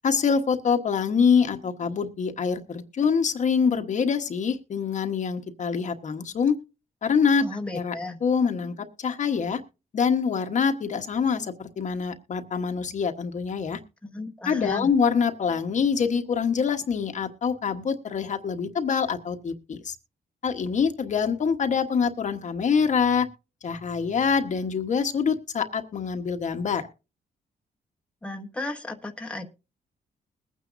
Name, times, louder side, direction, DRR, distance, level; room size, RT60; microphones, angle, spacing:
voice 1, 0.0-6.6 7.0-7.4 7.7-7.9 8.2-9.6 9.9-13.8 14.4-20.0 20.4-23.3 23.6-26.8, left 6 dB, 50° left, 7 dB, 1.2 m, -25 dB
voice 2, 7.4-8.2 14.0-14.9 28.2-29.5, left 2 dB, 5° left, 3 dB, 1.1 m, -34 dB
21.5 x 9.2 x 2.6 m, 0.30 s
cardioid pair, 135°, 16 cm